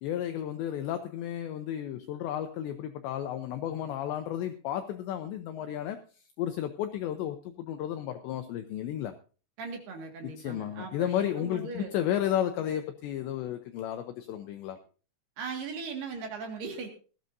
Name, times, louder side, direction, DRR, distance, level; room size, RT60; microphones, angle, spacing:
voice 1, 0.0-6.0 6.4-9.1 10.4-14.8, left 11 dB, 80° left, 7 dB, 2.6 m, -33 dB
voice 2, 9.6-11.9 15.4-16.9, right 5 dB, 60° right, 2 dB, 3.5 m, -38 dB
19.5 x 14.0 x 2.7 m, 0.38 s
omnidirectional pair, 6.0 m